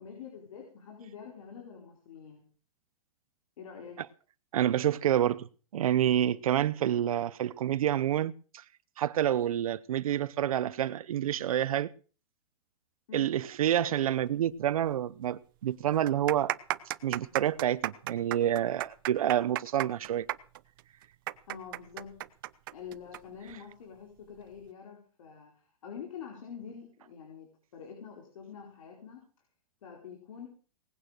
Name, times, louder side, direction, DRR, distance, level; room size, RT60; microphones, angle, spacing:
voice 1, 0.0-2.5 3.6-4.0 13.1-13.4 17.1-17.2 21.5-22.3 22.7-29.3 29.8-30.5, left 7 dB, 65° left, 4.5 m, -46 dB
voice 2, 4.5-5.5 5.7-8.6 9.0-11.9 13.1-16.5 17.0-20.3, right 11 dB, 75° right, 0.8 m, -28 dB
sound 1, 14.9-15.0 15.2-15.3 15.9-23.2 23.5-23.6 24.3-24.6, right 16 dB, 35° right, 0.7 m, -34 dB
19.0 x 9.1 x 6.5 m
supercardioid pair, 170°, 18 cm